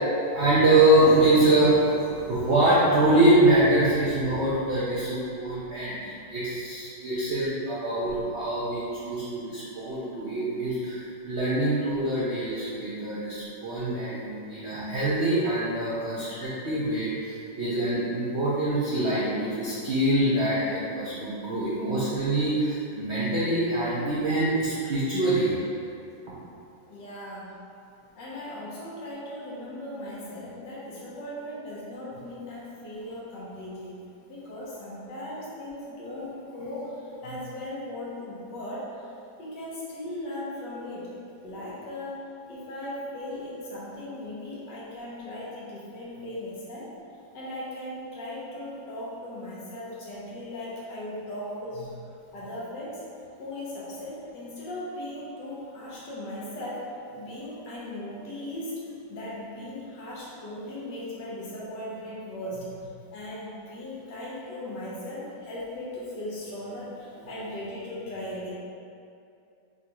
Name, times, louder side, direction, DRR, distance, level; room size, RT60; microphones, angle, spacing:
voice 1, 0.3-25.5, right 1 dB, 55° right, -9 dB, 0.7 m, -24 dB
voice 2, 26.9-27.5 28.2-39.1 39.4-41.1 41.4-46.9 47.3-51.9 52.3-53.0 53.4-62.7 63.1-68.5, left 1 dB, 70° left, -7 dB, 1.6 m, -38 dB
6.4 x 2.4 x 3.0 m, 2.5 s
omnidirectional pair, 2.0 m